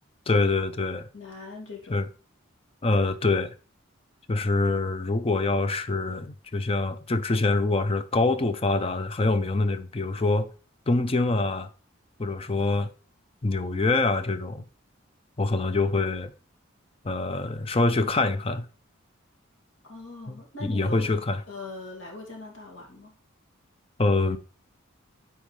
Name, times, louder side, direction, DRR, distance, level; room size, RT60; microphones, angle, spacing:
voice 1, 0.3-1.1 1.9-2.0 2.8-3.5 4.3-10.5 10.9-11.7 12.2-12.9 13.4-14.6 15.4-16.3 17.0-18.7 20.3-21.4 24.0-24.4, left 3 dB, 30° left, 0.5 m, -25 dB
voice 2, 1.1-2.0 19.8-23.1, left 2 dB, 90° left, 2.3 m, -41 dB
9.0 x 4.4 x 3.2 m
head